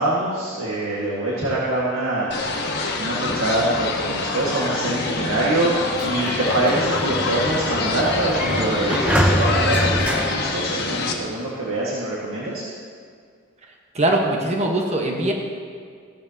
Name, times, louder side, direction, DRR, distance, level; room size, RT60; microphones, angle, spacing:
voice 1, 0.0-5.7 6.0-12.6, right 1 dB, 85° right, -5 dB, 1.8 m, -24 dB
sound 1, 2.3-11.1, left 3 dB, 50° left, 1.2 m, -25 dB
Sliding door, 5.7-11.3, equal, 5° right, 0.5 m, -26 dB
voice 2, 13.9-15.3, right 1 dB, 30° right, 0 dB, 1.2 m, -21 dB
16.0 x 12.5 x 2.9 m, 2.1 s
head